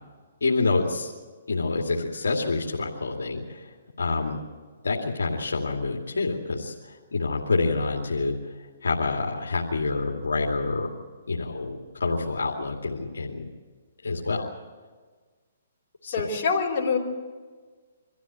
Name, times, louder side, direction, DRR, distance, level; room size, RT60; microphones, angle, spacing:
voice 1, 0.4-1.1 1.5-3.7 4.0-4.4 4.8-8.4 8.8-10.9 11.3-13.5 14.0-14.4 16.0-16.2, left 3 dB, 85° left, -1 dB, 2.6 m, -27 dB
voice 2, 16.1-17.0, left 5 dB, 35° left, -4 dB, 4.8 m, -25 dB
25.0 x 14.5 x 9.1 m, 1.5 s
hypercardioid pair, 145°, 0 cm